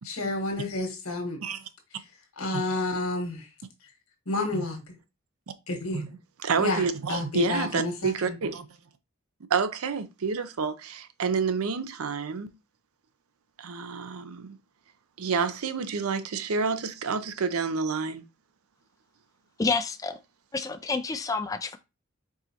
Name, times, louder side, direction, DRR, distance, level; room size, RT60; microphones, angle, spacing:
voice 1, 0.0-1.4 2.4-3.5 4.3-4.8 5.7-6.0 6.6-8.4, left 2 dB, 90° left, 1.5 m, -30 dB
voice 2, 6.4-8.7 9.5-12.5 13.6-14.6 15.2-18.3, right 5 dB, 85° right, 0.6 m, -29 dB
voice 3, 19.6-20.2 20.5-21.8, left 4 dB, 15° left, 0.3 m, -29 dB
4.7 x 3.9 x 2.8 m
head